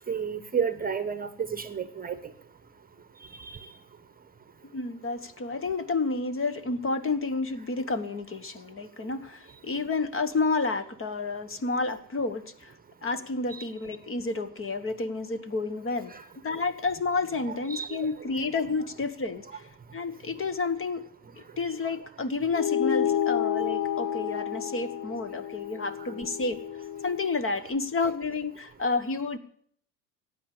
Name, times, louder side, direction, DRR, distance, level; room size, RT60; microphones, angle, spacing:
voice 1, 0.1-2.2 3.4-3.6 13.6-13.7 16.1-16.2 17.7-18.1, right 7 dB, 20° right, 12 dB, 1.2 m, -31 dB
voice 2, 4.7-12.7 13.0-16.1 16.4-19.7 19.9-21.0 21.4-26.6 27.0-29.4, left 3 dB, 25° left, 12 dB, 1.4 m, -30 dB
sound 1, 22.5-27.3, left 10 dB, 40° left, 0.9 m, -30 dB
15.0 x 9.8 x 8.4 m, 0.64 s
hypercardioid pair, 85°, 49 cm